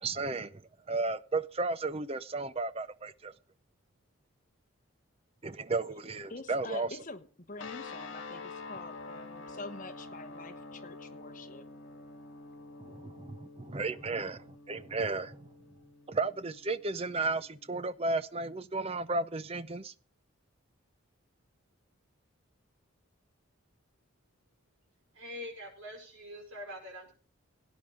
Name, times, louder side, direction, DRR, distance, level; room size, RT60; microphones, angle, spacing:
voice 1, 0.0-0.6 0.9-3.3 5.4-6.9 12.8-15.5 16.1-19.9, right 3 dB, 30° right, 0.5 m, -34 dB
voice 2, 6.3-11.6, left 3 dB, 40° left, 1.2 m, -46 dB
sound 1, 7.6-17.9, left 3 dB, 60° left, 1.9 m, -47 dB
voice 3, 25.1-27.1, left 1 dB, 85° right, 5.1 m, -44 dB
17.5 x 10.5 x 3.8 m
head